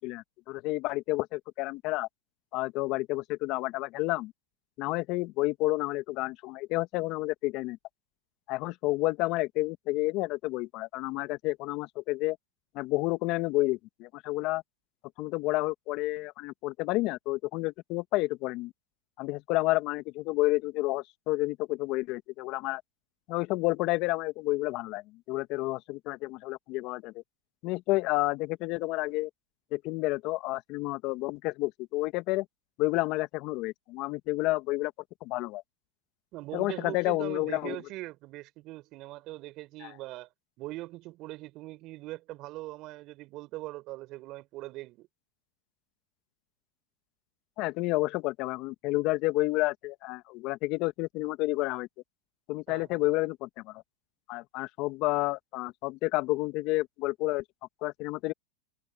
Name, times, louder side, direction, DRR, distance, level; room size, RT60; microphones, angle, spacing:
voice 1, 0.0-2.1 2.5-4.3 4.8-7.8 8.5-12.4 12.7-14.6 15.2-18.7 19.2-22.8 23.3-27.1 27.6-29.3 29.7-32.4 32.8-34.9 35.2-35.6 36.5-37.8 39.8-39.9 47.6-51.9 52.5-53.8 54.3-57.4 57.8-58.3, left 20 dB, 50° left, 1.4 m, -30 dB
voice 2, 36.3-40.3 40.6-45.1 52.7-53.0, right 18 dB, 50° right, 4.3 m, -41 dB
hypercardioid pair, 100°, 0 cm